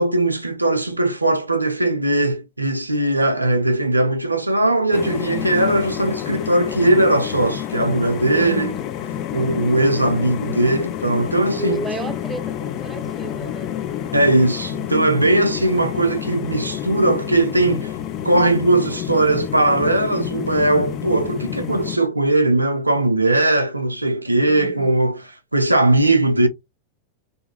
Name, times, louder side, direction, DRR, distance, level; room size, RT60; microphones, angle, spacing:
voice 1, 0.0-8.7 9.3-11.8 14.1-17.9 18.2-26.5, right 1 dB, 85° right, 0.3 m, -19 dB
sound 1, 4.9-22.0, left 10 dB, 40° left, 0.4 m, -29 dB
voice 2, 8.3-8.8 11.5-13.7 24.5-24.9, right 1 dB, 15° right, 0.6 m, -32 dB
2.7 x 2.4 x 3.0 m
figure-of-eight pair, 90°, 0 cm